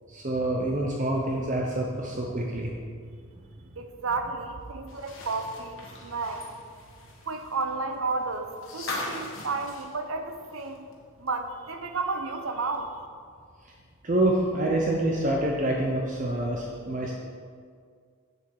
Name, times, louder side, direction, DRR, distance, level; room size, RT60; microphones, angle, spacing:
voice 1, 0.1-2.7 14.0-17.1, right 1 dB, 35° right, -1 dB, 0.7 m, -26 dB
voice 2, 3.8-6.4 7.3-10.8 11.2-12.9, right 3 dB, 75° right, 7 dB, 0.7 m, -32 dB
sound 1, 4.9-10.9 11.3-11.4 12.7-12.8, left 2 dB, 60° left, 1.5 m, -40 dB
8.2 x 7.1 x 4.7 m, 2.1 s
head